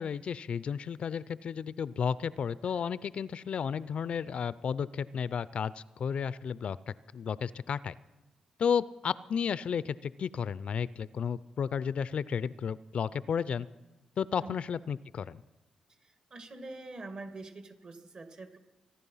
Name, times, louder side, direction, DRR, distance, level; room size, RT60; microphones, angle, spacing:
voice 1, 0.0-6.8 7.1-8.0 8.6-13.7 14.2-15.4, left 7 dB, 60° left, 18 dB, 0.4 m, -33 dB
voice 2, 16.3-18.6, right 2 dB, 45° right, 7 dB, 2.2 m, -44 dB
24.5 x 10.5 x 5.6 m, 1.0 s
cardioid pair, 75°, 2 cm